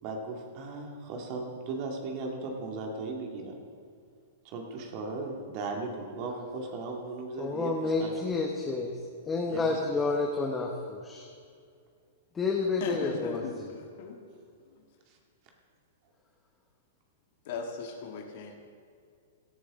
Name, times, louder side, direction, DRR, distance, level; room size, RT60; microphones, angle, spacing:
voice 1, 0.0-3.6 4.4-8.1 9.5-10.0 15.1-15.2, right 3 dB, 45° right, 1 dB, 2.2 m, -37 dB
voice 2, 7.4-8.9 9.2-11.3 12.3-13.7, left 3 dB, 15° left, 1 dB, 1.1 m, -30 dB
voice 3, 12.8-14.1 17.4-18.6, left 5 dB, 60° left, 2 dB, 1.6 m, -37 dB
17.5 x 11.0 x 3.7 m, 2.3 s
hypercardioid pair, 125°, 0 cm